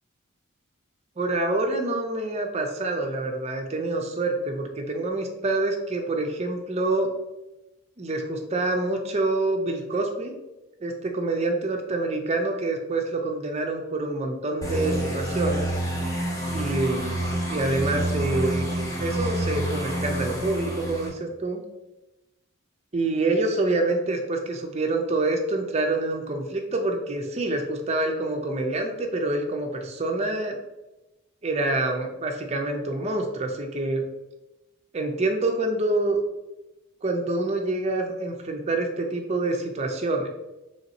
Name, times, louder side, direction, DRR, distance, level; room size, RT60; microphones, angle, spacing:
voice 1, 1.2-7.1 8.0-10.3 10.8-15.7 16.5-17.2 17.5-18.7 19.0-21.6 22.9-30.6 31.4-34.0 34.9-36.2 37.0-40.3, right 2 dB, 30° right, 3 dB, 0.5 m, -26 dB
sound 1, 14.6-21.1, right 1 dB, 15° left, 0.8 m, -28 dB
3.5 x 2.6 x 4.0 m, 1.0 s
head